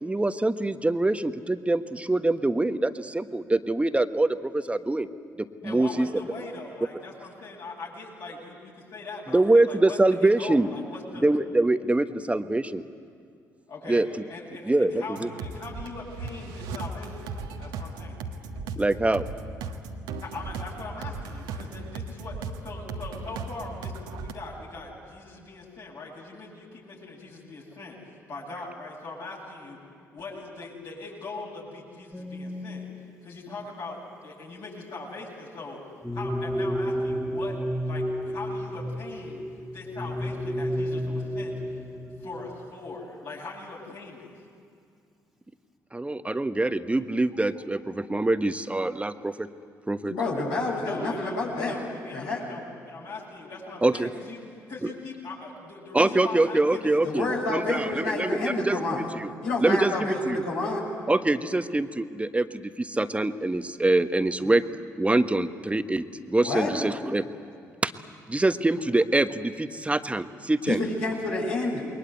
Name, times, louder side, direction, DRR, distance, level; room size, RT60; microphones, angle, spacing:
voice 1, 0.0-5.1 5.4-6.1 9.3-10.7 11.2-12.8 13.9-14.1 14.7-14.9 15.2-15.3 18.8-19.3 45.9-49.5 49.9-50.1 53.8-54.1 54.8-54.9 55.9-59.3 59.6-60.4 61.1-64.6 64.9-67.2 67.8-67.9 68.3-70.8, right 2 dB, 15° right, 10 dB, 1.3 m, -24 dB
voice 2, 5.6-11.3 13.7-18.2 20.2-29.8 30.1-32.9 33.2-35.8 36.1-37.6 37.8-39.4 39.7-41.8 42.2-44.4 50.7-54.4 54.7-57.4, left 3 dB, 60° left, -6 dB, 7.5 m, -41 dB
sound 1, 15.1-24.3, right 4 dB, 70° right, 1.5 m, -37 dB
sound 2, 32.1-33.2 36.0-43.0, equal, ahead, 2.5 m, -31 dB
voice 3, 50.1-51.8 52.1-52.4 57.0-59.0 59.4-60.9 66.4-66.7 70.7-71.8, left 2 dB, 75° left, -3 dB, 6.3 m, -28 dB
28.5 x 22.0 x 8.2 m, 2.3 s
figure-of-eight pair, 45°, 9 cm